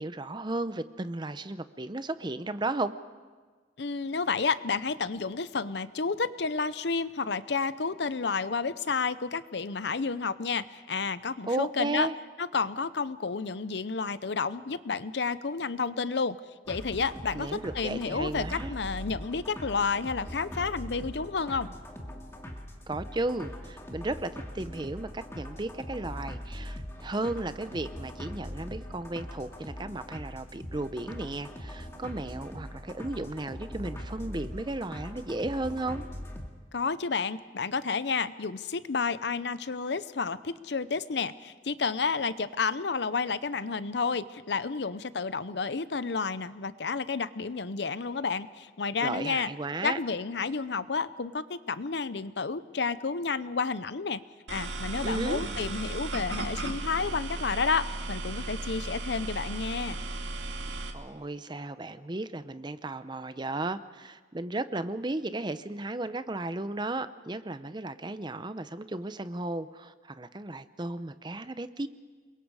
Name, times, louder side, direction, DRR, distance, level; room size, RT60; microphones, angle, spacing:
voice 1, 0.0-2.9 11.5-12.1 17.3-18.7 22.9-36.0 49.0-50.0 55.0-55.4 60.9-71.9, right 2 dB, 25° right, 12 dB, 0.7 m, -34 dB
voice 2, 3.8-12.1 12.4-16.4 16.7-17.5 17.7-21.7 36.7-49.5 49.8-54.2 54.5-60.0, left 4 dB, 65° left, 15 dB, 0.7 m, -31 dB
sound 1, 16.7-36.5, equal, 15° left, 2.2 m, -41 dB
sound 2, 54.5-60.9, right 2 dB, 85° right, 2.2 m, -35 dB
28.5 x 22.5 x 4.9 m, 1.5 s
head